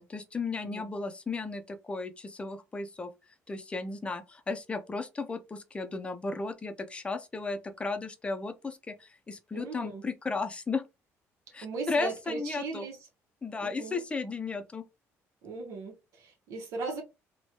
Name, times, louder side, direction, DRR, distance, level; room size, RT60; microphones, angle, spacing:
voice 1, 0.1-3.1 3.5-10.8 11.5-12.9 13.4-14.8, left 3 dB, 20° left, 0.5 m, -35 dB
voice 2, 9.5-10.0 11.6-13.1 13.6-14.0 15.4-17.0, right 3 dB, 75° right, 0.8 m, -38 dB
3.1 x 2.1 x 2.8 m
cardioid pair, 110°, 6 cm